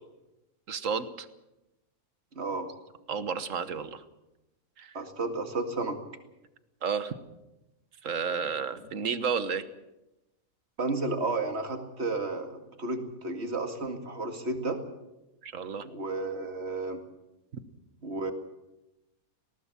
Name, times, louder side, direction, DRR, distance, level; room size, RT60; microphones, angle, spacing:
voice 1, 0.7-1.3 3.1-4.0 4.8-5.0 6.8-7.1 8.0-9.6 15.4-15.8, right 6 dB, 65° right, 12 dB, 1.5 m, -31 dB
voice 2, 2.4-2.7 4.9-6.0 10.8-14.8 15.8-17.0 18.0-18.3, right 3 dB, 50° right, 5 dB, 2.5 m, -32 dB
19.5 x 18.5 x 7.3 m, 0.97 s
omnidirectional pair, 1.5 m